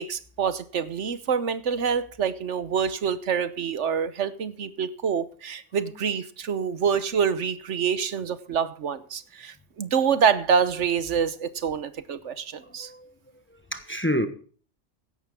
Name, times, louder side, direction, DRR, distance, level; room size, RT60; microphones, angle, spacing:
voice 1, 0.0-12.9, right 7 dB, 75° right, 1.2 m, -26 dB
voice 2, 12.6-13.1 13.7-14.3, equal, 10° left, 1.1 m, -28 dB
16.0 x 11.5 x 3.5 m
omnidirectional pair, 1.2 m